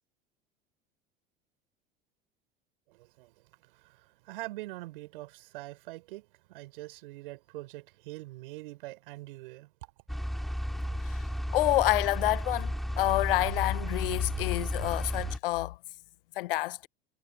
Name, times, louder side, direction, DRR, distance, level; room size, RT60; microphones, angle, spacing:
voice 1, 2.9-10.0, right 19 dB, 65° right, 5.0 m, -44 dB
sound 1, 10.1-15.4, equal, ahead, 4.2 m, -33 dB
voice 2, 11.5-15.8 16.3-16.9, left 17 dB, 70° left, 1.1 m, -28 dB
hypercardioid pair, 75°, 29 cm